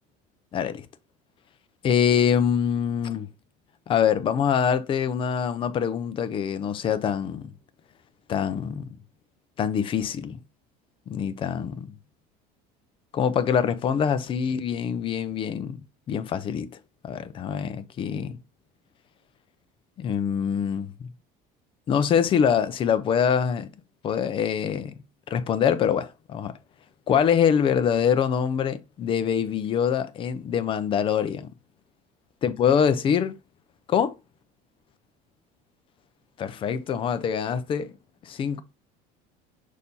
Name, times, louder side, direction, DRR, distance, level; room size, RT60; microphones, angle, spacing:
voice 1, 0.5-0.9 1.8-3.3 3.9-7.5 8.3-8.9 9.6-10.4 11.1-11.9 13.1-15.8 16.1-16.7 17.0-18.4 20.0-21.1 21.9-23.7 24.0-24.9 25.3-26.5 27.1-31.5 32.4-33.4 33.9-34.1 36.4-37.9 38.3-38.6, left 8 dB, 30° left, 0.5 m, -24 dB
6.5 x 2.7 x 5.4 m
cardioid pair, 160°, 18 cm